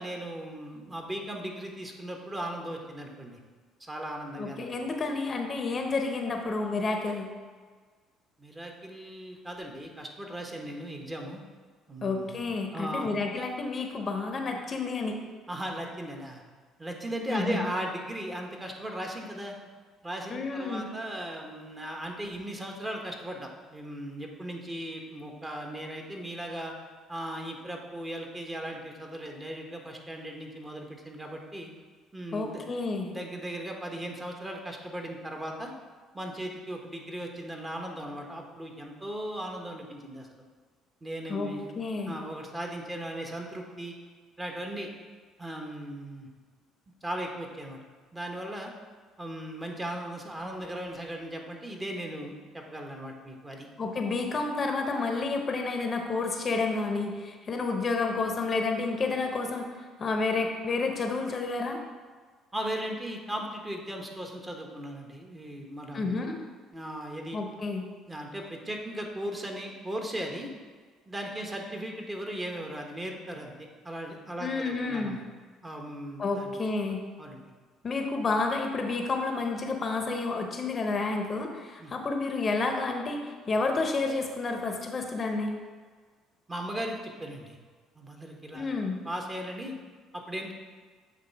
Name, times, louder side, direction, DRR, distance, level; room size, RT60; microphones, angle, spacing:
voice 1, 0.0-3.4 3.8-4.7 8.4-11.4 11.9-12.4 12.7-13.1 15.5-16.4 16.8-19.6 20.0-26.7 27.1-31.7 32.1-32.7 33.1-35.7 36.1-40.3 41.0-41.7 42.0-43.9 44.4-44.9 45.4-46.3 47.0-47.8 48.1-48.7 49.2-53.7 62.5-66.1 66.7-67.4 68.1-70.5 71.1-75.2 75.6-76.5 77.2-77.4 81.8-81.9 86.5-87.6 87.9-88.8 89.0-89.8 90.1-90.5, right 1 dB, 20° right, 2 dB, 1.2 m, -37 dB
voice 2, 4.4-7.3 12.0-15.2 17.3-17.7 20.3-20.9 32.3-33.1 41.3-42.1 53.8-61.8 65.9-66.4 67.3-67.8 74.4-75.2 76.2-77.1 77.8-85.6 88.5-89.0, left 3 dB, 40° left, 4 dB, 0.8 m, -30 dB
7.9 x 3.2 x 4.5 m, 1.5 s
hypercardioid pair, 60°, 0 cm